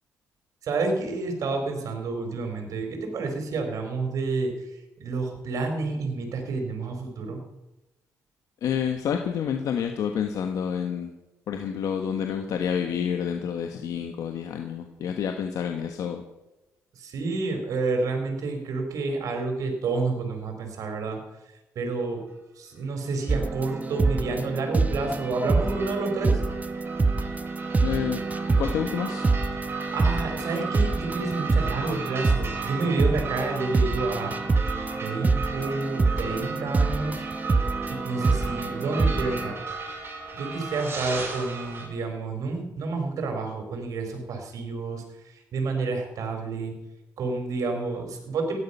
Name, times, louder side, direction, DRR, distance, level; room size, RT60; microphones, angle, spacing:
voice 1, 0.6-4.5 5.0-7.4 17.0-21.2 21.8-22.2 22.6-26.4 29.9-34.3 35.0-37.2 37.9-39.6 40.3-45.0 45.5-46.7 47.2-48.6, right 3 dB, 70° right, 4 dB, 4.1 m, -29 dB
voice 2, 8.6-11.1 11.5-16.2 27.8-28.2 28.6-29.2, left 8 dB, 75° left, 4 dB, 1.3 m, -28 dB
sound 1, 23.3-39.5, right 3 dB, 25° right, 0.9 m, -26 dB
sound 2, 23.3-41.9, right 4 dB, 45° right, 5.2 m, -36 dB
16.0 x 11.5 x 5.5 m, 0.97 s
cardioid pair, 80°, 6 cm